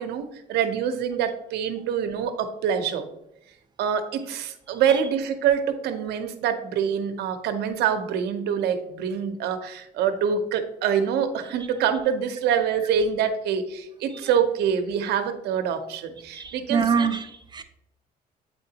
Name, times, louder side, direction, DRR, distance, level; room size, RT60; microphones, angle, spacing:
voice 1, 0.0-3.1 3.8-16.8, right 7 dB, 75° right, 8 dB, 0.7 m, -25 dB
voice 2, 4.7-5.0 14.1-14.3 16.3-17.6, right 6 dB, 25° right, 8 dB, 0.5 m, -26 dB
7.8 x 4.4 x 2.8 m, 0.83 s
cardioid pair, 110°, 17 cm